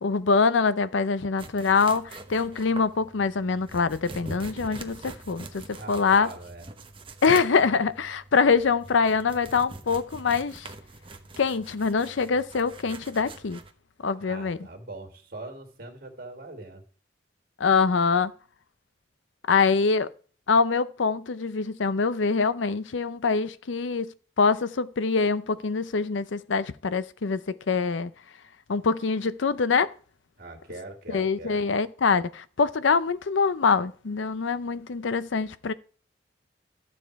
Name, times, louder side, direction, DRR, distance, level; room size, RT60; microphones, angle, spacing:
voice 1, 0.0-6.3 7.2-10.7 11.4-13.6 14.0-14.6 17.6-18.3 19.5-20.1 20.5-24.1 24.4-28.1 28.7-29.9 31.1-35.7, left 5 dB, 90° left, 0.6 m, -24 dB
sound 1, 1.4-13.7, right 2 dB, 30° right, 0.9 m, -44 dB
voice 2, 5.7-6.7 14.2-16.8 30.4-31.7, right 2 dB, 55° right, 2.3 m, -42 dB
12.5 x 7.2 x 4.6 m
head